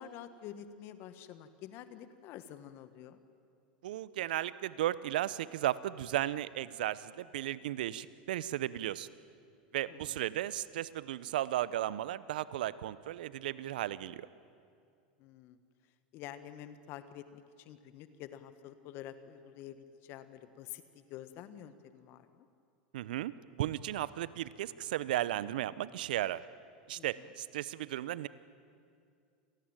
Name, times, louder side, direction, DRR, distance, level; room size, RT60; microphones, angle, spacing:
voice 1, 0.0-3.2 9.9-10.2 15.2-15.6 16.1-22.5 26.9-27.3, left 10 dB, 50° left, 11 dB, 1.5 m, -48 dB
voice 2, 3.8-9.1 9.7-14.3 22.9-26.4 26.9-28.3, right 13 dB, 75° right, 18 dB, 0.8 m, -35 dB
27.5 x 18.5 x 9.0 m, 2.3 s
hypercardioid pair, 95°, 5 cm